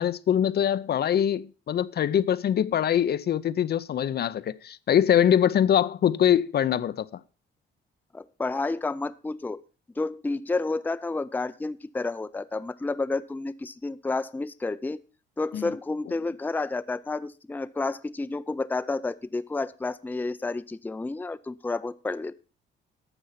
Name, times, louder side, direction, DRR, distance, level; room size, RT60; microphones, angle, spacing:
voice 1, 0.0-7.1 15.5-15.6, left 9 dB, 55° left, 0.6 m, -23 dB
voice 2, 8.1-9.6 10.0-15.0 15.4-22.3, left 3 dB, 10° left, 0.5 m, -30 dB
12.0 x 7.0 x 5.6 m
cardioid pair, 90°, 20 cm